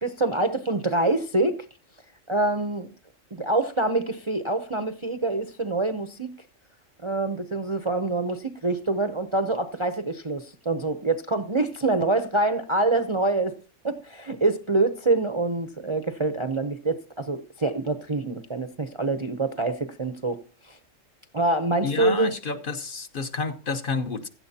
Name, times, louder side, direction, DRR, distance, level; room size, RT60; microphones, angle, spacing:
voice 1, 0.0-1.6 2.3-2.9 3.3-6.3 7.0-13.5 13.8-20.4 20.6-20.8 21.3-22.3, right 2 dB, 30° right, 0.6 m, -25 dB
voice 2, 21.8-24.3, left 4 dB, 45° left, 1.0 m, -29 dB
16.0 x 12.5 x 2.8 m
omnidirectional pair, 1.4 m